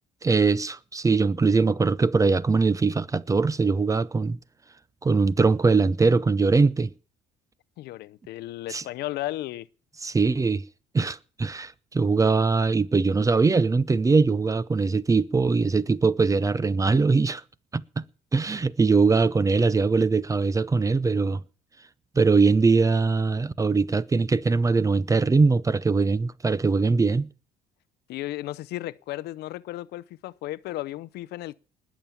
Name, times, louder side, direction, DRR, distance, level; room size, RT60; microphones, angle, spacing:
voice 1, 0.2-4.4 5.0-6.9 8.7-8.8 10.0-10.6 10.9-17.4 17.7-18.1 18.3-21.4 22.2-27.3, right 4 dB, 20° right, 0.6 m, -22 dB
voice 2, 7.8-9.7 28.1-31.6, left 16 dB, 75° left, 0.6 m, -34 dB
19.5 x 7.2 x 7.1 m
cardioid pair, 110°, 17 cm